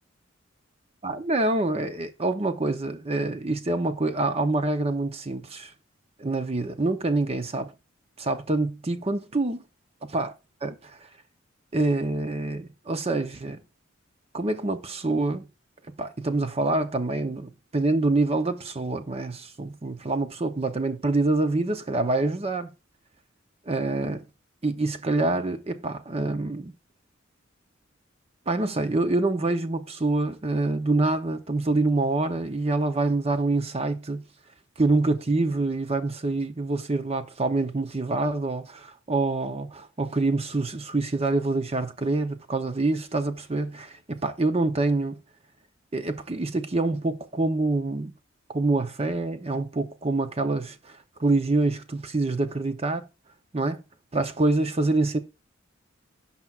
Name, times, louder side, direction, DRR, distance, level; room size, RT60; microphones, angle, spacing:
voice 1, 1.0-5.7 6.2-7.7 8.2-9.6 10.0-10.3 10.6-11.0 11.7-13.6 14.3-15.5 16.0-22.7 23.7-24.3 24.6-26.7 28.5-34.2 34.8-45.2 45.9-48.1 48.5-53.1 53.5-53.8 54.1-55.2, right 2 dB, 30° right, 0.8 m, -26 dB
16.5 x 5.8 x 2.4 m
head